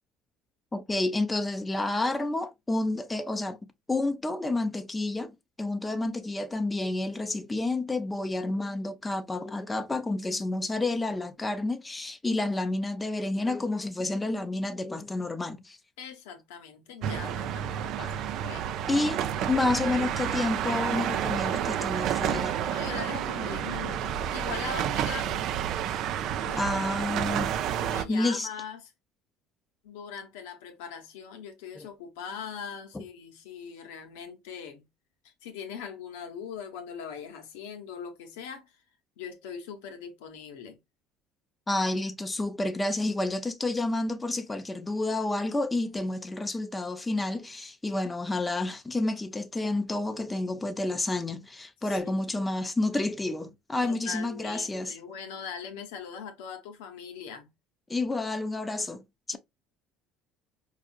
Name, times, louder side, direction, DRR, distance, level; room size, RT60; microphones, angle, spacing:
voice 1, 0.7-3.6 3.9-5.3 5.6-15.8 18.0-18.3 18.9-19.2 19.5-22.5 26.6-27.5 28.1-28.5 31.8-31.9 32.9-33.0 41.7-54.9 57.9-59.0 59.3-59.4, left 2 dB, 15° left, 0.6 m, -30 dB
voice 2, 16.0-18.1 18.4-18.8 19.5-20.2 22.6-25.5 26.4-26.7 27.7-28.9 29.8-34.8 35.2-38.8 39.2-40.8 51.8-52.3 53.8-57.5, left 7 dB, 90° left, 0.9 m, -41 dB
sound 1, 17.0-28.0, right 10 dB, 65° right, 0.4 m, -30 dB
4.8 x 2.4 x 2.5 m
supercardioid pair, 90°, 0 cm